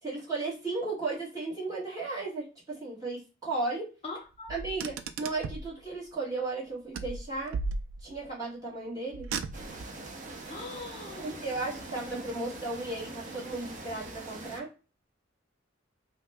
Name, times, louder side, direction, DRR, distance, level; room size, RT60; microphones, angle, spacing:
voice 1, 0.0-3.9 4.5-7.6 8.0-9.3 11.2-14.7, right 3 dB, 20° right, 1.5 m, -35 dB
voice 2, 4.0-4.5 10.5-11.5, left 3 dB, 30° left, 0.4 m, -41 dB
Car, 4.5-5.7 6.9-8.3 9.1-10.0, right 4 dB, 80° right, 0.3 m, -36 dB
sound 1, 9.5-14.6, right 2 dB, 40° right, 0.6 m, -43 dB
2.9 x 2.1 x 3.3 m
head